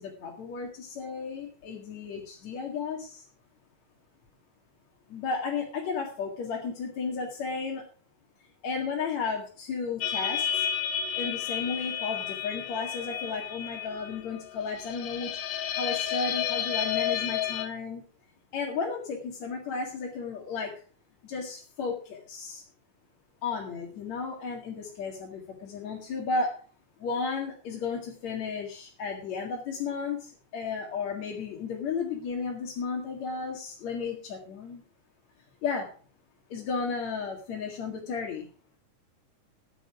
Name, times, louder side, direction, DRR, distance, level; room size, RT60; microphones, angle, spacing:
voice 1, 0.0-3.2 5.1-7.8 8.6-10.7 11.2-18.0 18.5-20.7 21.2-22.6 23.4-26.5 27.0-34.8 35.6-35.9 36.5-38.5, left 5 dB, 55° left, -1 dB, 3.1 m, -33 dB
sound 1, 10.0-17.7, left 9 dB, 80° left, 2.7 m, -31 dB
14.5 x 9.6 x 4.9 m, 0.41 s
omnidirectional pair, 3.9 m